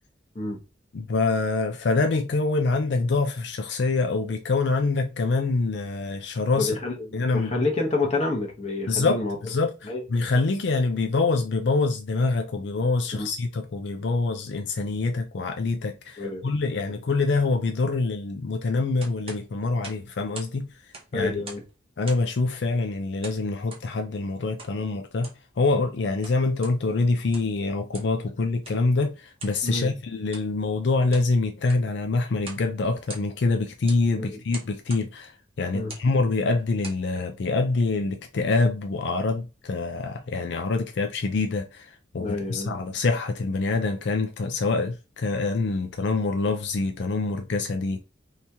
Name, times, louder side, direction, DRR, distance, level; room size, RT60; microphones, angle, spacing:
voice 1, 0.9-6.7 7.1-7.5 8.9-20.7 21.1-21.4 22.0-35.3 35.6-48.0, left 3 dB, 65° left, 0.4 m, -25 dB
voice 2, 6.6-9.4 9.8-10.0 13.2-13.3 16.2-16.5 21.1-21.6 29.6-30.0 34.1-34.4 35.7-35.9 42.2-42.8, left 2 dB, 35° left, 0.9 m, -28 dB
sound 1, 19.0-20.6 20.8-21.7 22.0-22.4 23.2-23.9 24.6-24.8 25.1-25.5 26.0-26.8 27.2-27.6 27.9-28.2 28.6-28.8 29.4-29.6 30.2-30.5 30.9-31.3 31.6-31.9 32.4-32.7 32.9-33.5 33.9-34.1 34.5-35.1 35.8-36.1 36.6-37.0, right 3 dB, 30° right, 0.8 m, -43 dB
2.9 x 2.8 x 3.4 m
head